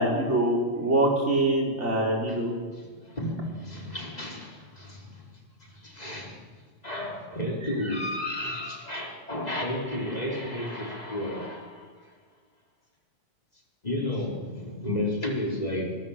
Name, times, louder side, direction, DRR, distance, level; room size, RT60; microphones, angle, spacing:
voice 1, 0.0-2.5, right 1 dB, 70° right, -1 dB, 4.8 m, -24 dB
voice 2, 2.8-5.2 5.6-6.4 6.8-11.9 13.8-16.0, left 1 dB, 30° left, 0 dB, 4.5 m, -32 dB
24.5 x 21.5 x 7.4 m, 1.5 s
omnidirectional pair, 1.3 m